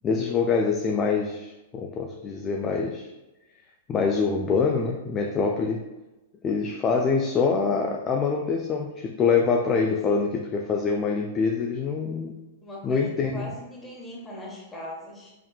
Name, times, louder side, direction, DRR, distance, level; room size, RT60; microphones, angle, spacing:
voice 1, 0.0-3.1 3.9-5.9 6.4-12.4 12.8-13.5, left 5 dB, 25° left, 1 dB, 0.3 m, -25 dB
voice 2, 9.8-10.2 12.6-15.3, left 1 dB, 10° left, -4 dB, 1.1 m, -40 dB
3.9 x 3.0 x 2.3 m, 1.0 s
hypercardioid pair, 105°, 0 cm